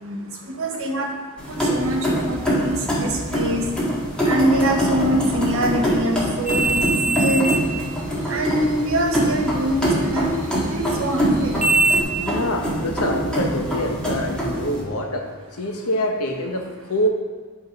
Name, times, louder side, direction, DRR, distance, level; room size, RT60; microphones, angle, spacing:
voice 1, 0.6-1.1 1.5-3.6 4.2-7.6 8.3-10.3 10.7-11.6, right 1 dB, 65° right, 1 dB, 1.3 m, -24 dB
sound 1, 1.4-14.8, equal, 5° left, 1.9 m, -24 dB
sound 2, 6.5-12.0, right 3 dB, 40° right, 1.1 m, -25 dB
voice 2, 12.1-17.1, left 1 dB, 90° left, 3 dB, 1.1 m, -25 dB
10.0 x 3.9 x 5.3 m, 1.4 s
head